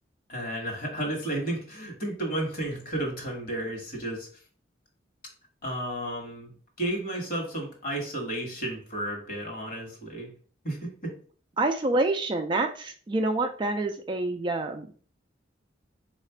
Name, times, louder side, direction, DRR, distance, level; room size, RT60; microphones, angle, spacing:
voice 1, 0.3-4.3 5.6-6.5 6.8-10.3 10.6-11.2, right 1 dB, 50° left, 1 dB, 1.3 m, -32 dB
voice 2, 11.6-14.9, right 2 dB, 25° right, 5 dB, 0.3 m, -27 dB
4.1 x 2.4 x 4.4 m, 0.43 s
head